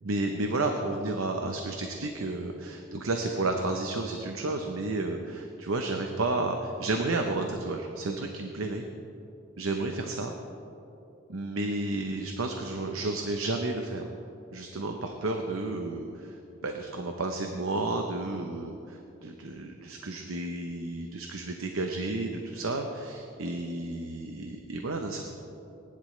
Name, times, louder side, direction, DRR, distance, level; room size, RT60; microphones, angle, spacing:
voice 1, 0.0-8.8 9.6-10.3 11.3-14.0 14.5-16.4 16.6-25.2, right 2 dB, 85° right, 4 dB, 0.8 m, -32 dB
19.0 x 11.0 x 3.2 m, 2.8 s
head